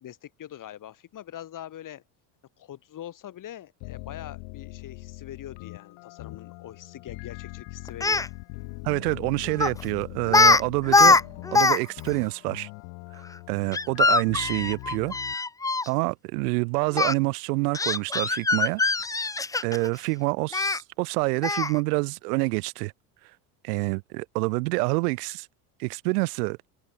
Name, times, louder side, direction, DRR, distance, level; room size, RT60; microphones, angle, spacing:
voice 1, 0.0-2.0 2.6-8.2 20.1-20.2, left 11 dB, 40° left, 2.5 m, -43 dB
sound 1, 3.8-15.4, left 40 dB or more, 65° left, 3.0 m, -42 dB
Speech, 7.9-8.3 9.6-9.8 10.3-10.6 10.9-11.8 12.1-12.2 13.7-15.9 16.9-17.1 17.7-19.9 20.5-20.8 21.4-21.8, left 3 dB, 5° left, 0.5 m, -21 dB
voice 2, 8.8-11.2 11.5-12.7 13.5-15.2 15.9-18.8 19.6-22.9 23.6-25.5 25.8-26.6, right 27 dB, 70° right, 1.1 m, -27 dB
Drum, 11.1-13.8, right 10 dB, 90° right, 3.8 m, -54 dB
open air
hypercardioid pair, 80°, 49 cm